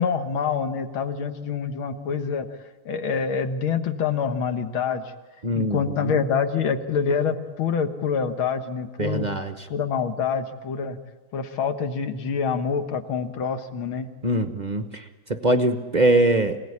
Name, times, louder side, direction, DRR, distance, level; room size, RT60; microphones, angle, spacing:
voice 1, 0.0-2.5 2.9-5.1 5.5-9.3 9.7-11.0 11.3-14.1, left 6 dB, 70° left, 8 dB, 2.1 m, -26 dB
voice 2, 5.4-6.1 9.0-9.5 14.2-15.0 15.3-16.6, right 1 dB, 50° right, 8 dB, 0.5 m, -22 dB
25.5 x 17.5 x 9.8 m, 1.3 s
omnidirectional pair, 2.4 m